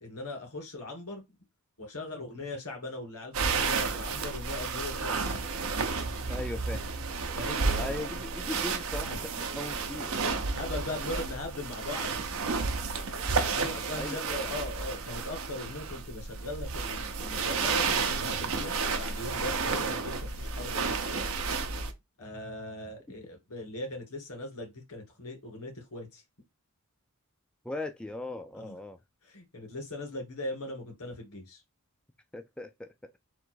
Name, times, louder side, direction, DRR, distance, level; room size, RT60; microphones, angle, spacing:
voice 1, 0.0-1.2 1.8-5.5 7.4-8.1 10.5-12.2 13.5-21.2 22.2-26.2 28.5-28.8 29.2-31.6, left 2 dB, 80° left, 2.4 m, -39 dB
sound 1, 3.3-21.9, right 4 dB, 65° right, 0.7 m, -32 dB
voice 2, 6.3-6.9 7.8-10.2 14.0-14.5 27.6-29.0 32.3-33.1, left 2 dB, 5° left, 0.3 m, -39 dB
3.9 x 2.5 x 4.5 m
head